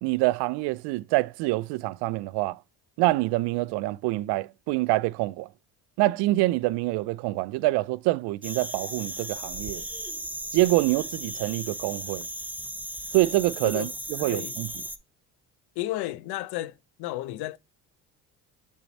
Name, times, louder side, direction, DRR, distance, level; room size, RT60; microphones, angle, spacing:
voice 1, 0.0-2.6 3.0-5.5 6.0-9.8 10.5-12.3 13.1-14.7, right 19 dB, 75° right, 0.5 m, -26 dB
sound 1, 8.4-15.0, right 1 dB, 5° right, 0.7 m, -36 dB
voice 2, 14.2-14.6 15.8-17.6, left 15 dB, 75° left, 0.8 m, -33 dB
7.0 x 4.5 x 4.1 m
supercardioid pair, 80°, 40 cm